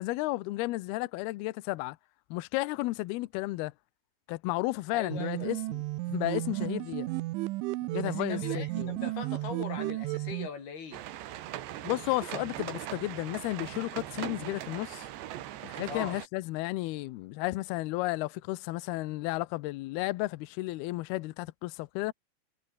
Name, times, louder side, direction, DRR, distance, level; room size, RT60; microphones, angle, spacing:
voice 1, 0.0-2.0 2.3-3.7 4.3-7.1 7.9-8.9 11.8-15.1 15.6-22.1, left 20 dB, 85° left, 2.2 m, -33 dB
voice 2, 4.9-5.5 8.0-11.0 15.9-16.2, left 6 dB, 55° left, 6.6 m, -40 dB
sound 1, 5.1-10.5, right 19 dB, 90° right, 3.3 m, -33 dB
sound 2, 10.9-16.3, right 13 dB, 70° right, 3.5 m, -40 dB
omnidirectional pair, 5.4 m